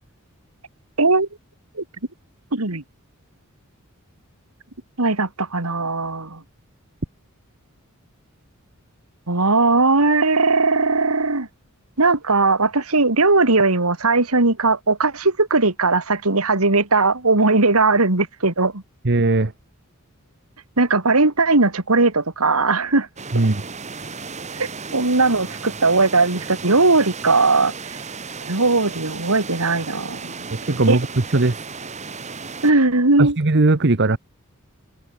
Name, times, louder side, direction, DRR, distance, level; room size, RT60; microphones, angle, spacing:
voice 1, 1.0-1.3 1.8-1.9 2.5-2.8 5.0-6.4 9.3-11.5 12.0-18.8 20.8-23.1 24.5-28.0 28.4-30.4 30.9-31.0 32.6-33.4, right 3 dB, 90° right, 2.8 m, -18 dB
voice 2, 19.0-19.5 23.3-23.6 30.5-31.1 31.3-31.7 33.2-34.2, right 2 dB, 55° right, 1.1 m, -18 dB
sound 1, 23.2-32.7, right 4 dB, 35° right, 2.8 m, -35 dB
open air
head